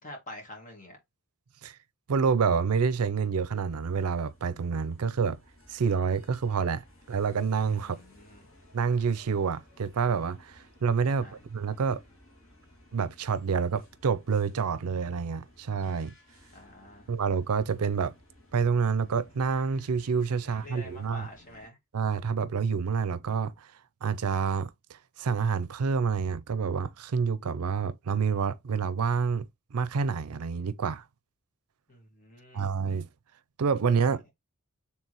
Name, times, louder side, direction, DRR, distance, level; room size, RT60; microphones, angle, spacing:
voice 1, 0.0-1.0 7.8-8.5 11.1-11.3 16.5-17.1 20.4-21.8 31.9-32.7 34.0-34.1, left 1 dB, 35° left, 1.8 m, -47 dB
voice 2, 2.1-5.4 5.7-8.0 8.7-12.0 12.9-16.1 17.1-18.1 18.5-21.3 21.9-23.7 24.0-31.0 32.5-33.1 33.6-34.3, right 5 dB, 85° right, 0.5 m, -28 dB
sound 1, 3.7-21.7, left 1 dB, 70° left, 2.1 m, -58 dB
4.6 x 3.5 x 3.0 m
head